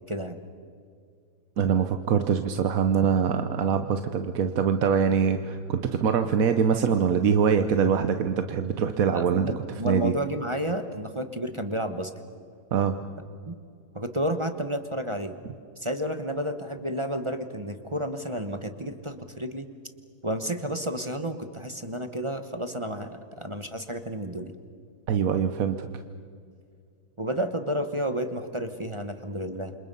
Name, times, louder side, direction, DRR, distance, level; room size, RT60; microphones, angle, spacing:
voice 1, 0.1-0.4 9.1-12.1 13.5-13.6 13.9-15.3 15.8-19.7 20.2-24.5 27.2-29.8, equal, 20° right, 8 dB, 0.9 m, -31 dB
voice 2, 1.6-9.5 9.8-10.1 12.7-13.0 25.1-25.9, right 7 dB, 55° right, 8 dB, 1.1 m, -23 dB
29.0 x 26.5 x 5.6 m, 2.3 s
omnidirectional pair, 2.1 m